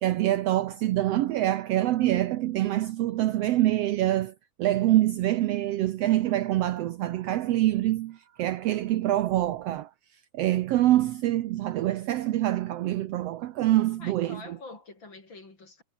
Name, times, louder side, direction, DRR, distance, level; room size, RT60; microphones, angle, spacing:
voice 1, 0.0-9.9 10.3-14.6, right 14 dB, 70° right, 1.6 m, -25 dB
voice 2, 14.0-15.8, left 3 dB, 40° left, 5.6 m, -45 dB
omnidirectional pair, 3.3 m